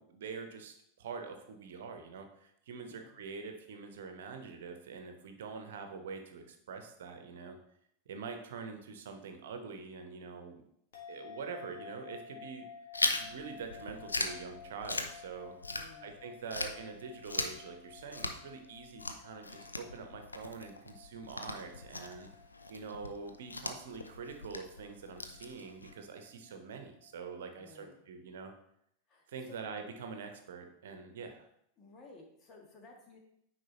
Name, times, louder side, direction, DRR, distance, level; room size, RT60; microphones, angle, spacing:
voice 1, 0.0-7.6 8.1-10.6 11.1-12.6 13.2-15.5 16.0-22.3 22.7-28.5 29.3-31.5, right 5 dB, 60° right, 5 dB, 1.0 m, -45 dB
sound 1, 10.9-27.4, left 6 dB, 55° left, 1.7 m, -54 dB
Chewing mastication, 12.9-16.2 16.5-25.9, left 3 dB, 80° left, 0.6 m, -39 dB
voice 2, 15.7-16.2 27.5-28.0 29.1-29.7 31.8-33.2, left 3 dB, 30° left, 1 dB, 1.7 m, -56 dB
9.3 x 4.8 x 3.0 m, 0.74 s
figure-of-eight pair, 90°, 0 cm